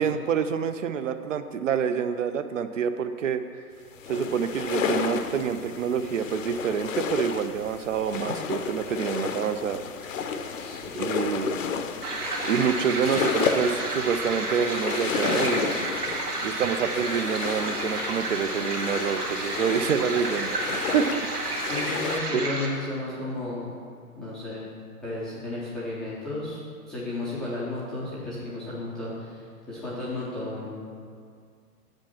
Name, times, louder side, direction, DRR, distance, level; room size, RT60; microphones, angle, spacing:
voice 1, 0.0-3.4 4.1-9.8 11.0-11.6 12.4-15.8 16.4-21.3 22.3-22.4, right 7 dB, 55° right, 9 dB, 0.6 m, -27 dB
sound 1, 4.0-22.2, left 6 dB, 55° left, 0.7 m, -32 dB
voice 2, 10.5-11.0 21.6-23.7 24.1-24.7 25.0-26.6 26.9-30.8, left 2 dB, ahead, -11 dB, 0.5 m, -33 dB
sound 2, 12.0-22.7, right 2 dB, 75° right, 2.1 m, -31 dB
7.4 x 5.2 x 7.2 m, 2.2 s
figure-of-eight pair, 125°, 46 cm